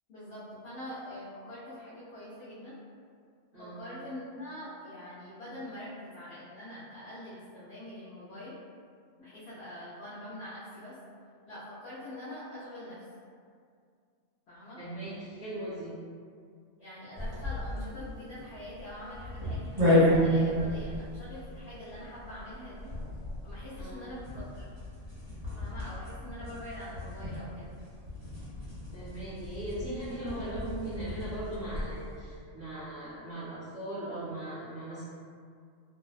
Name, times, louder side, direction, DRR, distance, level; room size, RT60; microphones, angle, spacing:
voice 1, 0.1-2.7 3.6-8.6 9.2-10.9 11.5-13.0 14.5-14.8 16.8-22.9 23.4-24.6 25.5-27.7, left 1 dB, 65° left, -10 dB, 0.8 m, -44 dB
voice 2, 14.8-15.9 23.7-24.0 28.9-35.0, right 1 dB, 15° right, -14 dB, 0.7 m, -39 dB
sound 1, 17.1-32.1, left 1 dB, 35° right, 1.3 m, -32 dB
2.5 x 2.1 x 2.3 m, 2.2 s
omnidirectional pair, 1.3 m